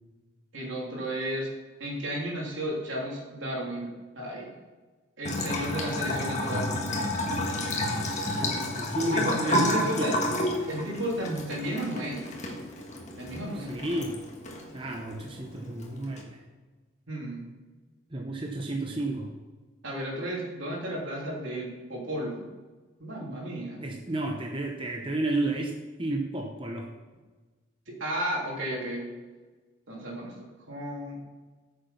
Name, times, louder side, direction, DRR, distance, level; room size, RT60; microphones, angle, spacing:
voice 1, 0.5-1.5 1.8-4.6 5.2-6.7 9.0-10.2 10.7-12.3 13.2-13.8 17.1-17.4 19.8-22.5 23.0-23.8 27.9-29.1 29.9-31.2, right 1 dB, 70° right, -3 dB, 3.1 m, -33 dB
Bathtub (filling or washing) / Trickle dribble, 5.2-16.2, left 1 dB, 35° left, 1.6 m, -31 dB
voice 2, 8.7-10.3 13.5-14.2 14.7-16.4 18.1-19.3 23.2-23.4 23.8-26.9, right 2 dB, 25° right, 1 dB, 0.8 m, -32 dB
9.5 x 7.0 x 5.7 m, 1.3 s
head